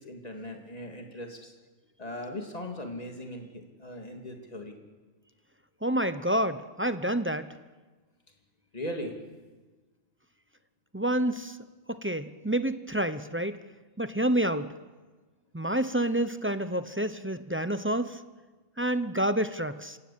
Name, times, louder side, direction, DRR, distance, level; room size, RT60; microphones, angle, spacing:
voice 1, 0.0-1.5 2.0-4.7 8.7-9.2 15.6-15.7, left 1 dB, 30° left, 2 dB, 3.1 m, -39 dB
voice 2, 5.8-7.5 10.9-11.6 11.9-13.6 14.0-14.7 15.5-18.2 18.8-20.0, right 1 dB, 10° right, 11 dB, 0.6 m, -28 dB
27.5 x 17.0 x 8.7 m, 1.3 s
omnidirectional pair, 1.3 m